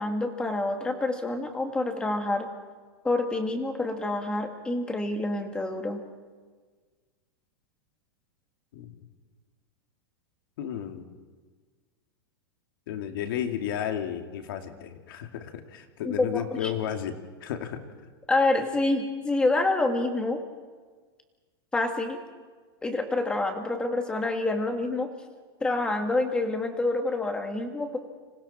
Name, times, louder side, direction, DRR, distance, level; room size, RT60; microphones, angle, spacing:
voice 1, 0.0-2.5 3.0-6.0 16.0-16.7 18.3-20.4 21.7-22.2 22.8-25.1 25.6-28.0, left 2 dB, 5° left, 5 dB, 1.8 m, -27 dB
voice 2, 10.6-11.1 12.9-17.8, left 9 dB, 60° left, 5 dB, 2.6 m, -33 dB
30.0 x 26.5 x 4.4 m, 1.5 s
supercardioid pair, 170°, 13 cm